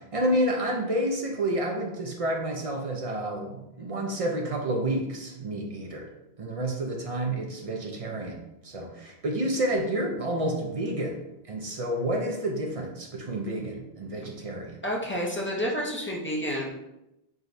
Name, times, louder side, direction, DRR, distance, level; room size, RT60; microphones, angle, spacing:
voice 1, 0.0-6.1 6.4-11.2 11.5-14.8, right 1 dB, 45° right, 1 dB, 0.5 m, -29 dB
voice 2, 14.8-16.7, equal, 15° left, -3 dB, 0.6 m, -29 dB
4.9 x 3.0 x 2.6 m, 0.88 s
omnidirectional pair, 1.1 m